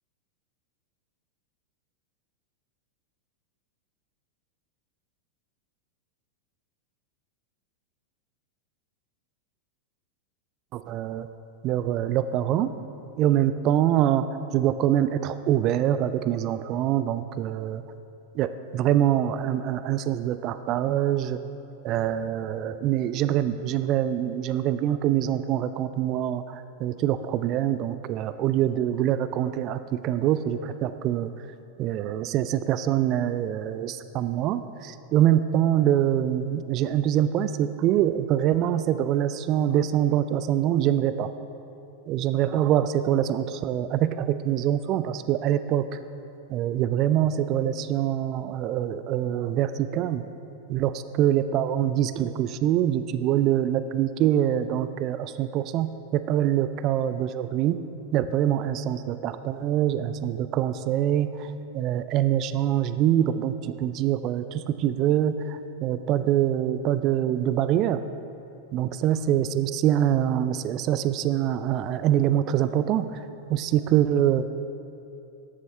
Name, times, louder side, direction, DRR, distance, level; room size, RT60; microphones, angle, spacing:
voice 1, 10.7-11.3 11.6-12.7 13.2-14.3 14.5-17.8 18.3-21.4 21.8-31.3 31.8-41.3 42.1-46.0 46.5-50.2 50.7-50.9 51.2-57.8 58.1-68.0 68.7-74.5, right 11 dB, 35° right, 12 dB, 0.4 m, -24 dB
14.5 x 11.0 x 3.3 m, 2.8 s
figure-of-eight pair, 90°, 0 cm